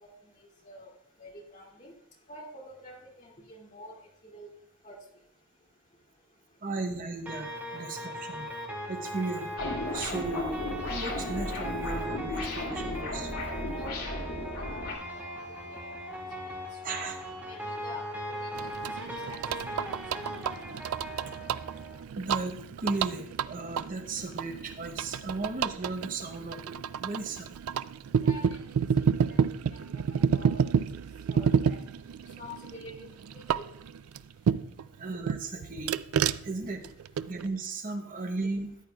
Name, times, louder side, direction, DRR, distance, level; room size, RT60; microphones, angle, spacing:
voice 1, 1.2-1.9 2.3-3.9 4.2-4.5 4.8-5.0 13.7-14.2 14.7-15.3 15.7-16.0 16.9-17.1 17.4-18.7 19.3-19.4 19.8-20.3 28.2-28.6 29.3-29.4 29.7-30.8 31.3-31.8 32.4-33.7, left 1 dB, 35° left, -1 dB, 2.4 m, -47 dB
voice 2, 6.6-8.5 8.9-9.5 9.9-13.3 16.8-17.2 22.1-27.6 35.0-36.0 36.4-36.8 37.3-38.8, right 3 dB, 40° right, 5 dB, 0.8 m, -35 dB
sound 1, 7.2-22.0, equal, 10° right, 2.0 m, -39 dB
sound 2, 9.6-14.9, left 2 dB, 80° left, 2.9 m, -35 dB
sound 3, 18.5-34.9 35.3-37.5, right 7 dB, 75° right, 0.3 m, -30 dB
14.0 x 10.0 x 2.3 m, 0.72 s
head